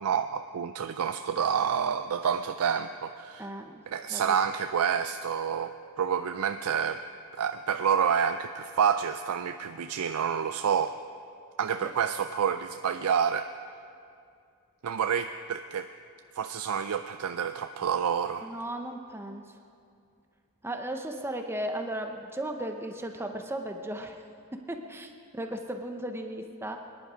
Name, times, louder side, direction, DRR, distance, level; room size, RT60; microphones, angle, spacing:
voice 1, 0.0-3.5 3.9-7.0 7.3-11.0 11.6-13.5 14.8-15.9 16.4-18.5, right 7 dB, 80° right, 9 dB, 0.4 m, -28 dB
voice 2, 3.4-3.8 4.1-4.4 11.8-11.9 18.4-19.6 20.6-24.2 24.7-26.8, right 1 dB, 10° right, 4 dB, 0.7 m, -36 dB
23.5 x 10.5 x 5.1 m, 2.4 s
head